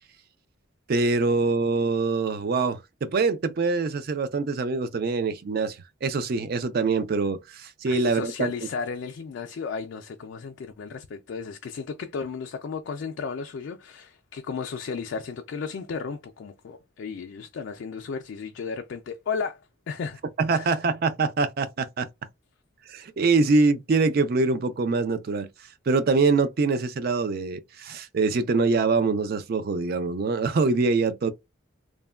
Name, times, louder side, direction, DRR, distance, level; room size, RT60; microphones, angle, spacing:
voice 1, 0.9-8.5 20.4-22.1 22.9-25.5 25.9-31.3, right 4 dB, 50° right, 0.4 m, -24 dB
voice 2, 7.9-19.6 19.9-20.2 20.5-20.8, left 5 dB, 60° left, 0.3 m, -34 dB
3.1 x 2.1 x 2.2 m
head